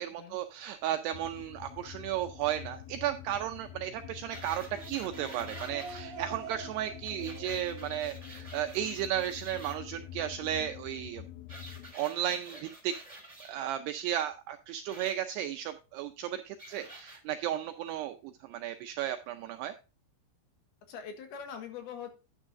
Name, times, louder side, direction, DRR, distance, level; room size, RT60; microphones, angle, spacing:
voice 1, 0.0-11.3 11.9-13.0 13.4-19.7, right 11 dB, 85° right, 8 dB, 2.4 m, -34 dB
sound 1, 1.1-11.9, left 12 dB, 85° left, 2.1 m, -47 dB
sound 2, 4.3-6.0 7.0-9.7 11.5-13.5 14.9-15.1 16.6-17.2 17.9-18.0, right 1 dB, 10° right, 2.6 m, -49 dB
sound 3, 4.5-9.2, right 8 dB, 55° right, 2.8 m, -47 dB
voice 2, 20.9-22.1, left 7 dB, 65° left, 5 dB, 3.1 m, -43 dB
11.5 x 9.8 x 2.5 m, 0.30 s
omnidirectional pair, 5.3 m